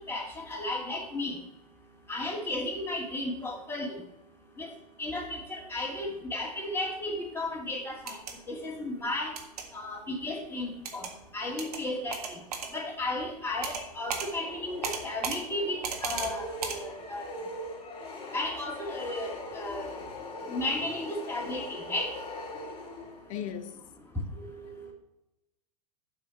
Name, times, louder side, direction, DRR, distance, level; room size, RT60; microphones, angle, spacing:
voice 1, 0.1-1.4 2.1-4.0 4.6-4.7 5.0-8.2 8.5-9.4 9.7-11.1 11.3-12.4 12.7-17.4 18.3-19.9 20.5-22.1 24.4-24.9, left 2 dB, 10° left, 2.3 m, -34 dB
sound 1, 7.9-8.3 9.4-9.6 10.8-11.1 11.6-11.8 12.1-12.7 13.6-13.8 14.1-14.3 14.8-15.4 15.8-16.3 16.6-16.8, right 6 dB, 70° right, 1.6 m, -34 dB
sound 2, 14.3-23.4, left 2 dB, 25° left, 1.9 m, -41 dB
voice 2, 23.3-23.9, left 9 dB, 55° left, 0.9 m, -38 dB
7.7 x 5.8 x 7.0 m
figure-of-eight pair, 90°, 20 cm